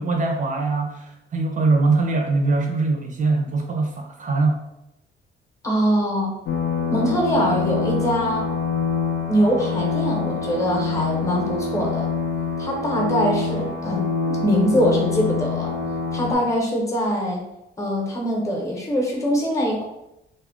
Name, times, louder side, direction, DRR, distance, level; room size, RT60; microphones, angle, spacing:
voice 1, 0.0-4.6, right 3 dB, 40° right, 3 dB, 0.5 m, -22 dB
voice 2, 5.6-6.3 6.9-8.5 9.3-12.1 12.6-15.7 16.1-17.4 17.8-19.8, equal, 15° left, -2 dB, 0.8 m, -23 dB
sound 1, 6.5-16.3, left 5 dB, 80° left, 0.5 m, -25 dB
2.3 x 2.1 x 3.5 m, 0.87 s
cardioid pair, 90°, 20 cm